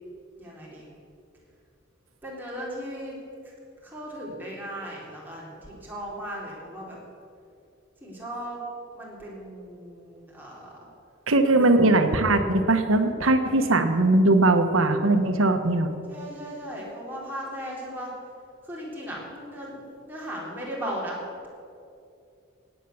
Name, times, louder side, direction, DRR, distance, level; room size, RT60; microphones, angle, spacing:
voice 1, 0.4-0.9 2.2-3.2 3.8-7.0 8.0-8.6 8.9-10.7 11.5-11.9 13.4-13.8 16.1-18.1 18.6-21.5, equal, 10° right, -5 dB, 3.7 m, -37 dB
voice 2, 11.3-15.9, right 2 dB, 85° right, 7 dB, 1.2 m, -20 dB
17.5 x 9.3 x 7.0 m, 2.5 s
head